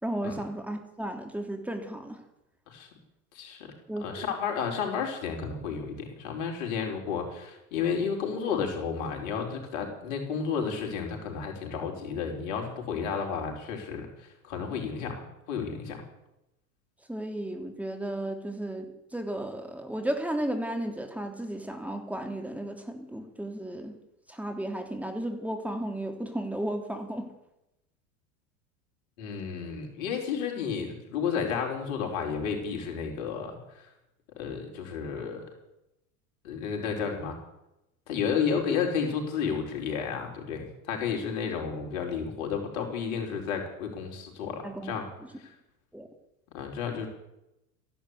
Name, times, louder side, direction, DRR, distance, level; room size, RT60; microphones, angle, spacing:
voice 1, 0.0-2.2 3.9-4.1 17.1-24.0 24.3-27.3 44.6-44.9 45.9-46.1, right 1 dB, 5° right, 5 dB, 3.0 m, -34 dB
voice 2, 3.3-3.7 4.0-16.0 29.2-33.9 34.4-35.5 36.4-37.4 38.1-45.1 45.4-45.5 46.5-47.1, left 6 dB, 70° left, 2 dB, 4.8 m, -32 dB
14.5 x 11.5 x 8.3 m, 0.88 s
hypercardioid pair, 100°, 43 cm